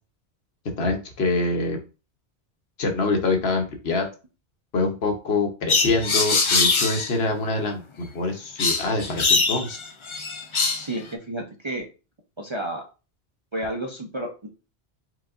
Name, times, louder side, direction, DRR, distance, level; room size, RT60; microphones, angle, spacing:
voice 1, 0.8-1.8 2.8-4.1 4.7-9.8, left 3 dB, 65° left, 4 dB, 1.1 m, -25 dB
sound 1, 5.7-7.1 8.6-10.9, left 4 dB, 40° left, 0.5 m, -22 dB
voice 2, 10.8-11.8 12.4-12.8 13.5-14.5, right 1 dB, 30° right, 1 dB, 0.6 m, -31 dB
4.8 x 4.0 x 2.5 m, 0.32 s
omnidirectional pair, 1.1 m